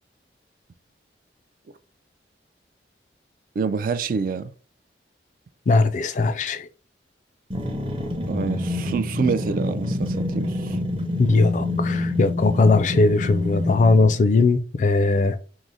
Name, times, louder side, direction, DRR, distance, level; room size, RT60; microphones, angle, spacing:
voice 1, 3.6-4.5 8.3-10.8, right 5 dB, 50° right, 0.3 m, -26 dB
voice 2, 5.7-6.7 11.2-15.4, left 3 dB, 45° left, 0.3 m, -19 dB
sound 1, 7.5-14.3, left 1 dB, 30° right, 0.7 m, -27 dB
4.8 x 2.0 x 3.9 m
head